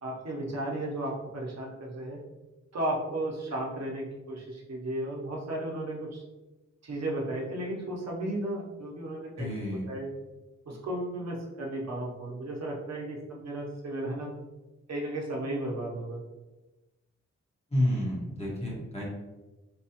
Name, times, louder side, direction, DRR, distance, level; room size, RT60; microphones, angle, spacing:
voice 1, 0.0-2.2 2.7-6.2 6.8-9.5 9.9-10.1 10.7-14.3 14.9-16.2, right 1 dB, 65° right, -3 dB, 0.8 m, -34 dB
voice 2, 9.4-9.9 17.7-19.0, left 1 dB, 20° left, -5 dB, 1.2 m, -30 dB
4.1 x 2.3 x 2.8 m, 1.1 s
wide cardioid pair, 130°, 29 cm